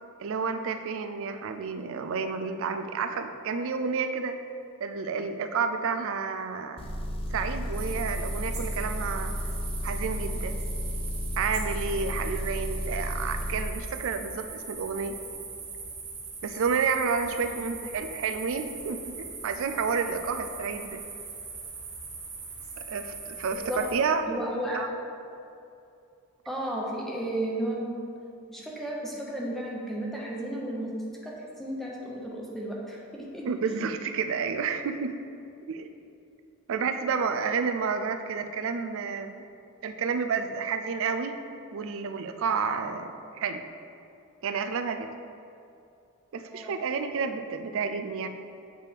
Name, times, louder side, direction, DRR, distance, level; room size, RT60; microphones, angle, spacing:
voice 1, 0.2-4.4 4.8-6.9 7.3-9.3 9.8-10.6 11.4-15.1 16.4-21.0 22.8-24.9 33.5-35.2 35.7-35.9 36.7-39.4 39.8-41.4 41.7-43.6 44.4-45.1 46.3-48.3, right 5 dB, 65° right, 8 dB, 0.4 m, -30 dB
Motor vehicle (road) / Engine, 6.8-13.7, equal, 25° left, 0.5 m, -32 dB
sound 1, 7.7-23.9, right 4 dB, 35° right, 1.0 m, -40 dB
voice 2, 24.3-24.8 26.5-27.9 28.5-30.9 31.2-33.4 46.5-46.7, right 1 dB, ahead, -4 dB, 0.9 m, -33 dB
7.6 x 3.4 x 4.5 m, 2.6 s
head